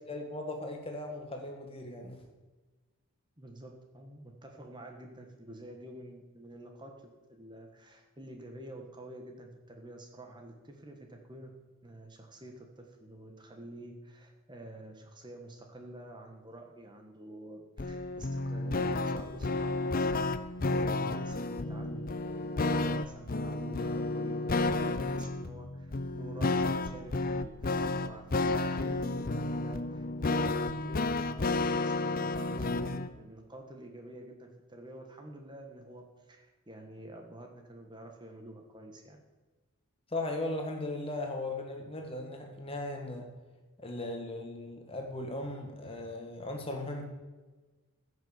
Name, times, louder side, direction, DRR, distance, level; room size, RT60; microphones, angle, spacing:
voice 1, 0.1-2.2 40.1-43.3 43.8-47.0, left 2 dB, 25° left, 3 dB, 1.7 m, -37 dB
voice 2, 3.4-11.5 11.8-39.2, right 1 dB, 20° right, 3 dB, 1.5 m, -49 dB
sound 1, 17.8-33.1, left 2 dB, 40° left, 0.6 m, -31 dB
15.0 x 6.6 x 7.2 m, 1.3 s
head